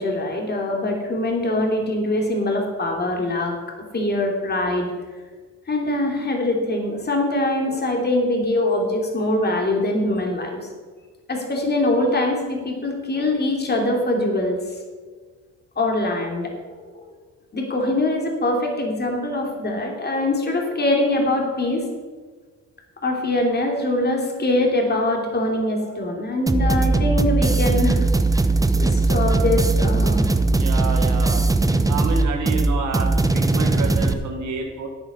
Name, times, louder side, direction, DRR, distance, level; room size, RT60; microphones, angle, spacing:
voice 1, 0.0-3.6 3.9-4.9 5.7-10.6 11.3-14.6 15.8-17.0 17.5-21.8 23.0-28.1 28.8-30.2, left 1 dB, 35° left, 1 dB, 3.1 m, -23 dB
sound 1, 26.5-34.1, right 2 dB, 10° right, 0.8 m, -19 dB
voice 2, 30.5-31.4 31.9-34.9, right 4 dB, 70° right, 2 dB, 1.6 m, -28 dB
13.0 x 9.0 x 5.5 m, 1.4 s
cardioid pair, 90°, 30 cm